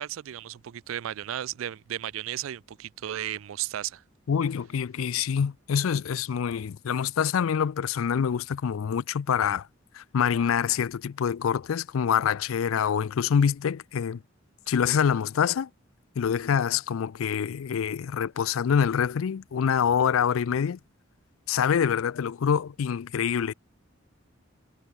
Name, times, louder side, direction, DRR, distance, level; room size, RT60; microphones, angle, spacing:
voice 1, 0.0-4.0, right 11 dB, 75° right, 0.4 m, -34 dB
voice 2, 4.3-9.7 9.9-14.2 14.7-15.7 16.2-20.8 21.5-23.5, left 7 dB, 90° left, 0.4 m, -26 dB
head